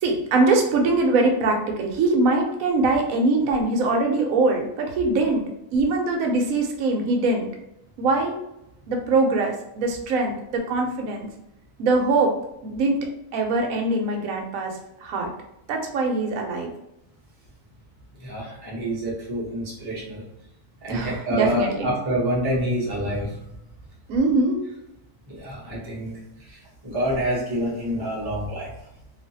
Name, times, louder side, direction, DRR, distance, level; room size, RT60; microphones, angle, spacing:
voice 1, 0.0-5.4 5.7-7.5 8.0-8.3 8.9-11.3 11.8-12.3 12.6-15.3 15.7-16.7 20.9-21.9 24.1-24.6, right 3 dB, 70° right, 2 dB, 0.9 m, -22 dB
voice 2, 18.2-20.2 20.8-23.4 25.3-28.7, equal, 30° right, -6 dB, 0.4 m, -27 dB
2.6 x 2.4 x 2.6 m, 0.86 s
omnidirectional pair, 1.6 m